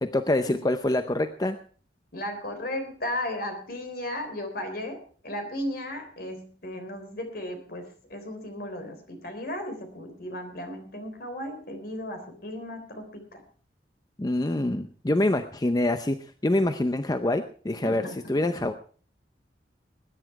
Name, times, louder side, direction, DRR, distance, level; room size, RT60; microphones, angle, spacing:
voice 1, 0.0-1.6 14.2-16.2 16.4-18.0 18.3-18.8, left 1 dB, 20° left, 9 dB, 0.6 m, -25 dB
voice 2, 2.1-13.4 17.8-18.2, left 1 dB, 60° left, 6 dB, 3.6 m, -35 dB
20.0 x 10.0 x 4.7 m, 0.43 s
head